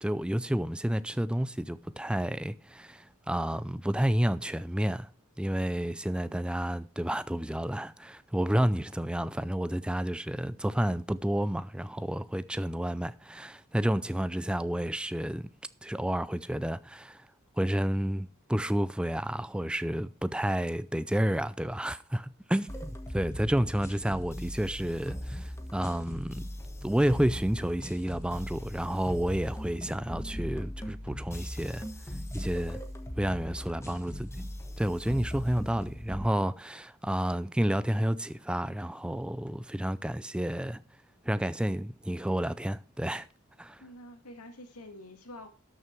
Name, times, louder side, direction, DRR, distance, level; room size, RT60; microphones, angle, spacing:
voice 1, 0.0-5.1 5.4-15.5 15.8-17.2 17.6-26.4 26.8-31.8 32.3-32.8 33.2-34.3 34.8-40.8 41.3-43.3 43.6-43.8, right 1 dB, 5° right, 0.4 m, -30 dB
sound 1, 22.7-36.3, equal, 10° left, 1.3 m, -39 dB
voice 2, 43.8-45.5, left 1 dB, 85° left, 2.2 m, -48 dB
12.5 x 6.4 x 4.5 m
head